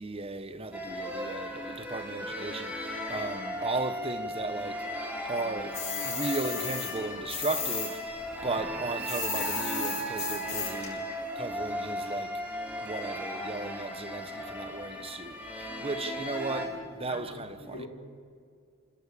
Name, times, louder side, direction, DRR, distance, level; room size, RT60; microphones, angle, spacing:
voice 1, 0.0-4.8 5.3-8.1 8.4-11.0 11.4-12.4 12.8-16.7 17.0-17.9, right 3 dB, 25° right, 1.0 m, -36 dB
sound 1, 0.7-16.7, equal, 5° right, 3.0 m, -36 dB
sound 2, 5.7-7.9 8.2-10.9, left 7 dB, 30° left, 6.7 m, -34 dB
voice 2, 17.0-17.9, left 1 dB, 75° left, 5.2 m, -44 dB
27.5 x 16.5 x 8.6 m
head